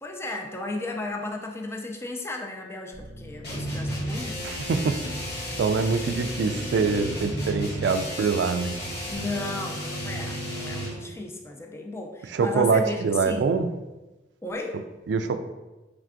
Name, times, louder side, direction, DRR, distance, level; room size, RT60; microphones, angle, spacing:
voice 1, 0.0-4.5 9.1-13.5 14.4-14.8, left 2 dB, 15° left, 2 dB, 0.3 m, -34 dB
Bass guitar, 2.9-9.2, equal, 75° left, 1.3 m, -46 dB
sound 1, 3.4-11.0, equal, 60° left, 1.0 m, -33 dB
voice 2, 4.4-5.0 5.6-8.7 12.3-13.7 15.1-15.4, right 5 dB, 65° right, 9 dB, 0.3 m, -24 dB
4.4 x 3.3 x 2.5 m, 1.1 s
head